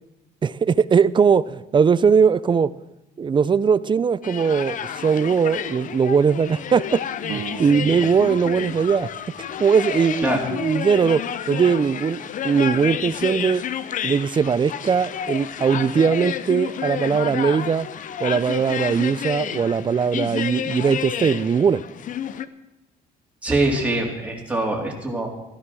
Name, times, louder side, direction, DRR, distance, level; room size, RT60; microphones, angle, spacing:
voice 1, 0.4-2.7 3.2-9.1 9.6-13.6 14.0-17.9 18.2-21.8, right 6 dB, 30° right, 17 dB, 0.5 m, -20 dB
sound 1, 4.2-22.5, left 9 dB, 50° left, 0.8 m, -30 dB
sound 2, 7.3-10.5, right 8 dB, 45° right, 1.4 m, -39 dB
voice 2, 23.4-25.3, right 2 dB, 10° right, -1 dB, 3.6 m, -23 dB
14.5 x 12.5 x 6.3 m, 0.92 s
cardioid pair, 110°, 17 cm